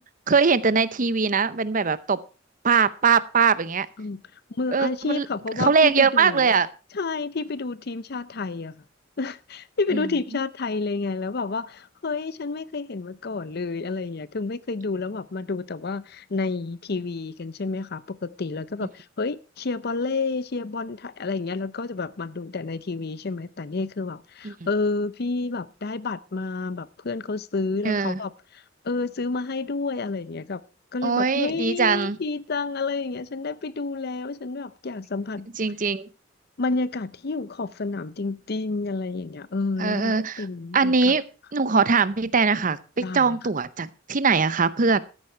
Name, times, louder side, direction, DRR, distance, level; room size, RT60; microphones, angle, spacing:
voice 1, 0.3-2.2 2.6-3.9 4.7-5.2 5.6-6.7 9.9-10.1 24.4-24.5 27.8-28.2 31.0-32.2 35.6-36.1 39.8-40.4 40.7-41.2 41.5-42.8 43.1-45.0, right 5 dB, 45° right, 0.7 m, -21 dB
voice 2, 4.5-6.5 6.9-8.8 9.2-30.6 30.9-35.5 36.6-41.1 43.0-43.4, left 3 dB, 55° left, 0.6 m, -30 dB
13.0 x 9.7 x 4.5 m
head